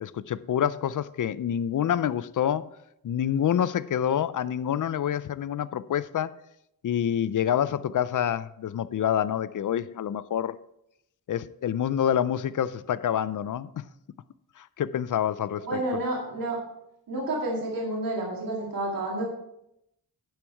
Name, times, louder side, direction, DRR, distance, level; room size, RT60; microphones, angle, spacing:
voice 1, 0.0-2.7 3.0-6.3 6.8-10.6 11.3-13.7 14.6-15.8, left 9 dB, 60° left, 0.5 m, -27 dB
voice 2, 15.6-16.6 17.1-19.3, right 2 dB, 70° right, 2.3 m, -30 dB
10.0 x 6.2 x 4.6 m
wide cardioid pair, 120°, 36 cm